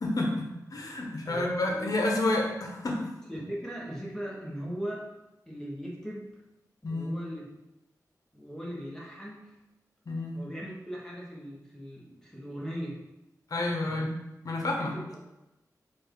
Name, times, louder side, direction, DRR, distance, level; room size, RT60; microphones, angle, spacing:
voice 1, 0.0-3.0 6.8-7.2 10.1-10.4 13.5-14.1 14.4-14.9, left 2 dB, 60° left, 0 dB, 0.9 m, -29 dB
voice 2, 1.2-1.9 3.3-5.1 5.5-6.4 6.9-7.4 8.3-9.5 10.3-13.0 13.8-14.0 14.8-15.2, equal, 5° left, -5 dB, 1.2 m, -39 dB
4.4 x 2.5 x 4.7 m, 0.97 s
wide cardioid pair, 100°, 7 cm